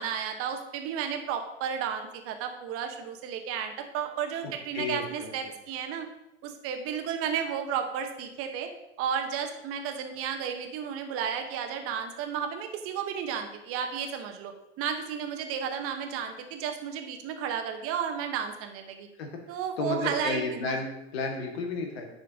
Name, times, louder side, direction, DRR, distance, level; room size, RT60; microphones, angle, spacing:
voice 1, 0.0-6.1 6.4-8.7 9.0-19.1 19.5-20.8, right 7 dB, 45° right, 5 dB, 1.2 m, -33 dB
voice 2, 4.7-5.5 19.2-19.3 19.8-22.1, left 4 dB, 65° left, 3 dB, 1.8 m, -32 dB
10.5 x 4.5 x 3.6 m, 0.87 s
hypercardioid pair, 95°, 33 cm